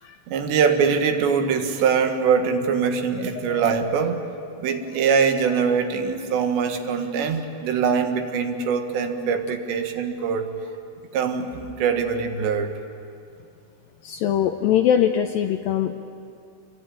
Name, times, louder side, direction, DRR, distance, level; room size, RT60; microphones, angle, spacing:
voice 1, 0.3-4.3 4.6-10.5 11.1-12.7, right 6 dB, 80° right, 5 dB, 3.8 m, -23 dB
voice 2, 3.4-3.9 14.0-15.9, left 9 dB, 80° left, 6 dB, 2.1 m, -22 dB
28.5 x 23.5 x 9.0 m, 2.4 s
omnidirectional pair, 5.0 m